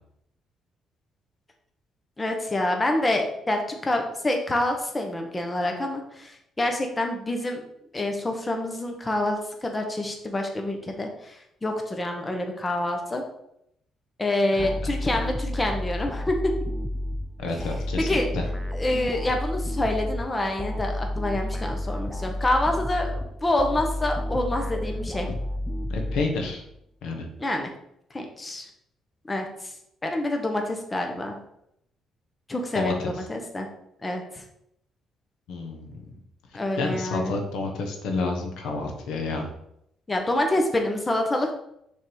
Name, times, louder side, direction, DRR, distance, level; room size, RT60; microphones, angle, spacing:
voice 1, 2.2-7.6 7.9-11.4 11.6-13.2 14.2-16.4 18.0-18.3 18.7-25.3 27.4-27.7 28.1-28.7 29.3-29.7 30.0-31.4 32.5-33.7 34.0-34.4 36.5-37.3 40.1-41.5, left 1 dB, 15° left, 3 dB, 0.9 m, -27 dB
voice 2, 14.6-15.3 17.4-18.4 25.3-25.4 25.9-26.6 27.0-27.3 32.7-33.1 35.5-35.9 36.8-39.5, left 3 dB, 85° left, 3 dB, 1.2 m, -30 dB
sound 1, 14.6-26.8, left 1 dB, ahead, 0.5 m, -31 dB
6.4 x 3.6 x 4.6 m, 0.76 s
cardioid pair, 125°, 0 cm